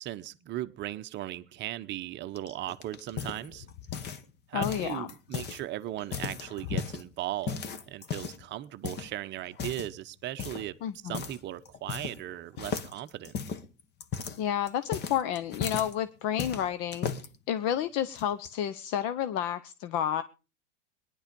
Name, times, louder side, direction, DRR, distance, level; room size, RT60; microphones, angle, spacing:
voice 1, 0.0-3.7 4.5-10.8 11.0-13.4, right 14 dB, 30° right, 0.9 m, -37 dB
sound 1, 2.4-4.3 4.6-5.6 6.0-7.0 7.5-8.4 8.8-9.1 9.5-9.9 10.4-10.7 11.1-11.4 11.6-12.3 12.6-15.9 16.4-17.3 17.9-18.5, left 6 dB, 30° left, 1.3 m, -36 dB
voice 2, 4.5-5.1 10.8-11.1 14.4-17.1 17.5-20.2, left 10 dB, 45° left, 0.9 m, -30 dB
19.0 x 11.0 x 5.2 m
supercardioid pair, 135°, 36 cm